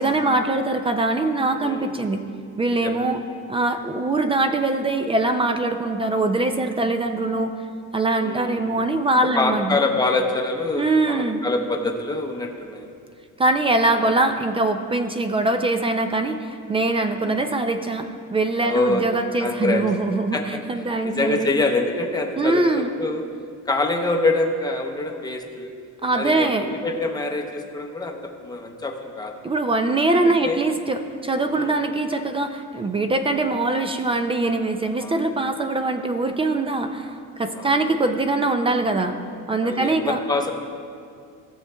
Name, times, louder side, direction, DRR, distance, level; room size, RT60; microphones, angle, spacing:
voice 1, 0.0-2.2 2.6-3.2 3.5-7.5 7.9-9.8 10.8-11.4 13.4-21.5 22.4-22.9 26.0-26.7 29.4-39.2 39.5-40.2, right 2 dB, 20° right, 7 dB, 0.3 m, -22 dB
voice 2, 1.6-2.0 2.7-3.0 8.2-8.7 9.3-12.9 14.0-14.1 17.2-17.4 18.6-19.0 19.4-19.8 20.3-20.6 21.0-23.2 23.7-25.7 26.1-29.3 30.2-30.6 31.5-31.8 35.0-35.2 37.6-38.0 39.6-40.5, left 2 dB, 15° left, 3 dB, 0.7 m, -25 dB
15.5 x 7.0 x 2.2 m, 2.3 s
cardioid pair, 125°, 31 cm